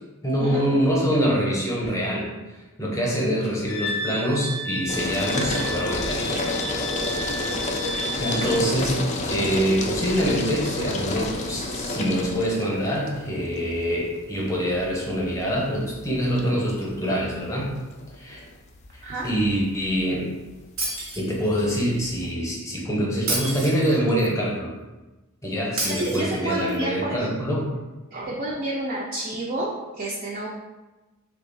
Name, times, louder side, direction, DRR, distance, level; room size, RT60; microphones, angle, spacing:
voice 1, 0.2-2.3 2.8-6.3 7.4-7.7 8.2-9.0 9.3-17.7 18.2-18.4 19.2-20.3 21.2-24.7 25.4-27.7, equal, 15° left, -3 dB, 0.7 m, -25 dB
Wind instrument woodwind instrument, 3.7-8.6, equal, 85° left, 0.5 m, -32 dB
sound 1, 4.9-22.3, left 2 dB, 35° left, 0.3 m, -31 dB
voice 2, 7.9-8.2 19.0-19.3 25.9-27.3 28.1-30.6, right 1 dB, 40° right, -5 dB, 0.4 m, -29 dB
Shatter, 20.8-21.7 23.3-24.3 25.8-26.8, right 2 dB, 90° right, 1.1 m, -30 dB
2.9 x 2.3 x 3.8 m, 1.1 s
head